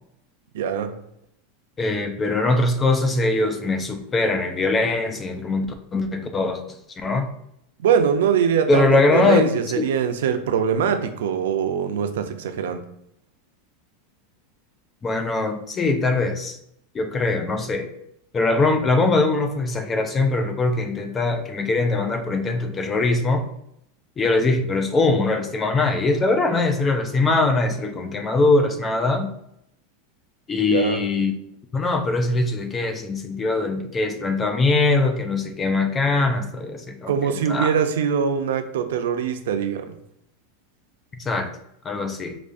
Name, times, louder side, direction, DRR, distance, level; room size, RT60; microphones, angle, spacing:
voice 1, 0.5-1.0 7.8-12.8 30.7-31.0 37.1-39.9, right 7 dB, 85° right, 0.4 m, -22 dB
voice 2, 1.8-5.7 5.9-6.6 7.0-7.3 8.7-9.5 9.8-9.9 15.0-16.6 16.9-17.9 18.3-23.5 24.2-29.3 30.5-31.3 31.7-37.7 41.2-41.5 41.8-42.4, left 3 dB, 15° left, 0.3 m, -22 dB
4.9 x 2.4 x 2.5 m
supercardioid pair, 170°, 0 cm